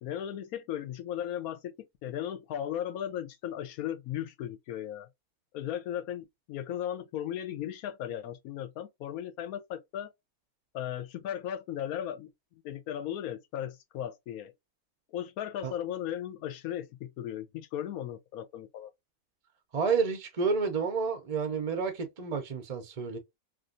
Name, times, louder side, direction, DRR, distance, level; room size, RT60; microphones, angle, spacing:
voice 1, 0.0-1.7 2.0-5.1 5.5-10.1 10.7-12.3 12.6-14.5 15.1-18.9, left 10 dB, 80° left, 1.1 m, -36 dB
voice 2, 19.7-23.2, right 5 dB, 50° right, 0.4 m, -30 dB
3.3 x 2.5 x 2.5 m
omnidirectional pair, 1.5 m